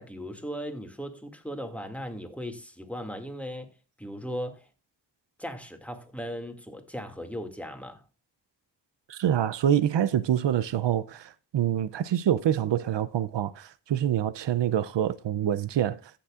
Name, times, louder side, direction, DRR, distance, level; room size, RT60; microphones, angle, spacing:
voice 1, 0.0-4.7 5.4-8.0, equal, 5° left, 2.1 m, -37 dB
voice 2, 9.1-16.0, right 10 dB, 85° right, 0.5 m, -26 dB
15.0 x 7.0 x 2.4 m
cardioid pair, 40°, 42 cm